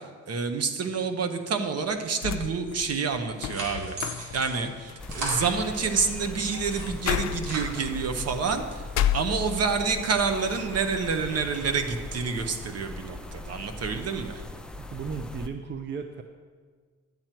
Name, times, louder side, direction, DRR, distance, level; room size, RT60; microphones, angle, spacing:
voice 1, 0.3-8.8 9.1-14.4, right 5 dB, 55° right, 6 dB, 1.0 m, -28 dB
sound 1, 1.9-9.9 10.3-11.1, left 11 dB, 60° left, 0.5 m, -33 dB
sound 2, 3.1-6.1 6.5-8.2, right 1 dB, 90° right, 2.1 m, -38 dB
sound 3, 5.0-15.5, left 2 dB, 5° left, 0.5 m, -40 dB
voice 2, 14.8-16.2, right 5 dB, 40° right, 6 dB, 0.6 m, -35 dB
10.5 x 7.5 x 4.5 m, 1.5 s
cardioid pair, 90°, 30 cm